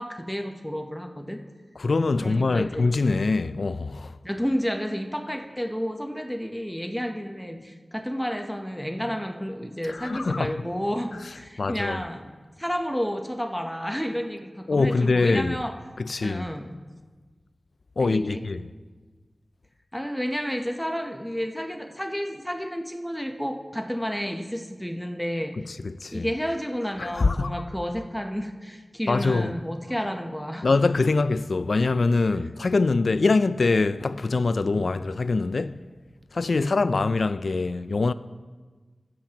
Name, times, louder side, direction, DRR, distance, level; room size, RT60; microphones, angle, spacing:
voice 1, 0.0-1.4 2.2-2.9 4.2-12.3 12.6-15.8 16.2-16.8 18.0-18.4 19.9-25.6 26.1-30.7 34.7-34.9 36.6-36.9, equal, 5° left, 0.7 m, -31 dB
voice 2, 1.8-4.1 9.9-10.5 11.6-12.0 14.7-15.6 16.0-16.5 18.0-18.7 25.6-26.3 27.0-27.6 29.1-29.5 30.6-35.8 36.3-38.1, left 3 dB, 75° left, 0.3 m, -24 dB
22.0 x 7.5 x 2.9 m
wide cardioid pair, 70°, 0 cm